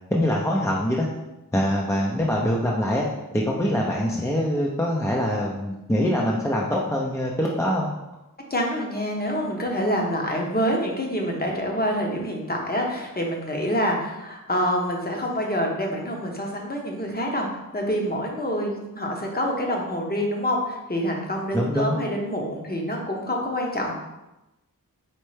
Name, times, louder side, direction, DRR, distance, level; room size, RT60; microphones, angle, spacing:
voice 1, 0.1-1.1 1.5-3.1 3.3-7.9 21.5-22.0, equal, 10° left, -3 dB, 0.5 m, -24 dB
voice 2, 8.5-17.5 17.7-23.9, equal, 25° left, 0 dB, 0.8 m, -26 dB
4.4 x 3.2 x 3.2 m, 0.97 s
wide cardioid pair, 75°, 35 cm